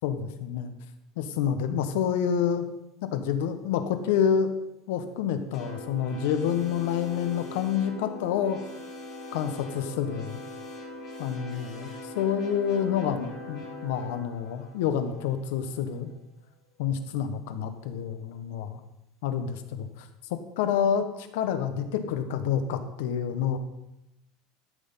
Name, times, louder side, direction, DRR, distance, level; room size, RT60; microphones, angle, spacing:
voice 1, 0.0-0.7 1.2-2.7 3.1-4.5 4.9-8.6 9.3-10.4 11.2-16.1 16.8-18.8 19.2-20.1 20.6-23.6, left 8 dB, 75° left, 9 dB, 1.1 m, -28 dB
sound 1, 5.5-16.0, left 1 dB, 30° left, 2.3 m, -41 dB
12.5 x 6.3 x 5.6 m, 0.91 s
cardioid pair, 170°, 0 cm